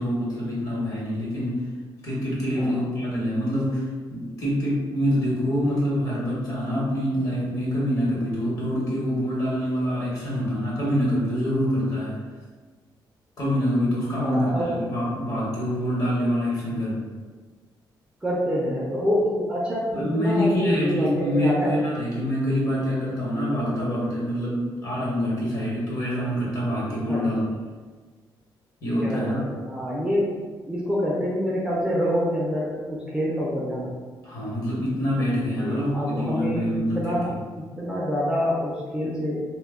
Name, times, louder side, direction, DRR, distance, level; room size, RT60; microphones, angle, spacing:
voice 1, 0.0-1.6 2.0-12.2 13.4-17.0 19.9-27.5 28.8-29.4 34.2-37.4, equal, 45° left, -7 dB, 1.1 m, -25 dB
voice 2, 14.2-14.8 18.2-21.7 27.1-27.4 29.0-30.3 30.7-33.9 35.6-39.4, equal, 10° right, -5 dB, 0.4 m, -26 dB
2.1 x 2.1 x 3.5 m, 1.4 s
cardioid pair, 150°, 8 cm